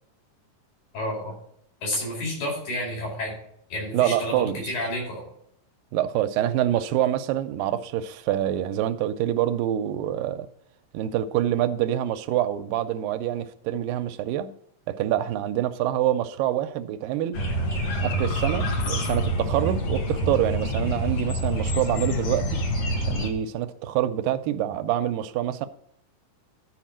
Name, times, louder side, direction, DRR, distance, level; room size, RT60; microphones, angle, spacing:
voice 1, 0.9-1.3 1.8-3.3 3.7-5.2, left 1 dB, 80° left, 6.4 m, -30 dB
voice 2, 3.9-4.7 5.9-10.5 10.9-14.5 14.9-17.4 18.0-22.6 23.0-25.7, right 12 dB, 80° right, 2.3 m, -26 dB
sound 1, 17.3-23.3, equal, 50° left, 2.4 m, -26 dB
12.5 x 5.0 x 7.4 m
omnidirectional pair, 4.0 m